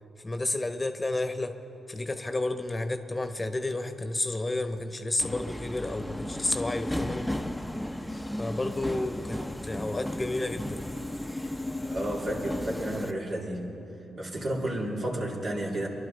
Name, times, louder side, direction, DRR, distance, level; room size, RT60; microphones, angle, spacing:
voice 1, 0.2-1.6 1.9-7.3 8.4-10.8, left 2 dB, 25° left, 7 dB, 1.1 m, -31 dB
Subway metro underground, 5.2-13.1, left 1 dB, 5° left, 0.8 m, -35 dB
voice 2, 11.8-13.8 14.2-15.9, right 1 dB, 60° right, -4 dB, 3.0 m, -32 dB
23.5 x 11.0 x 4.1 m, 3.0 s
hypercardioid pair, 40°, 0 cm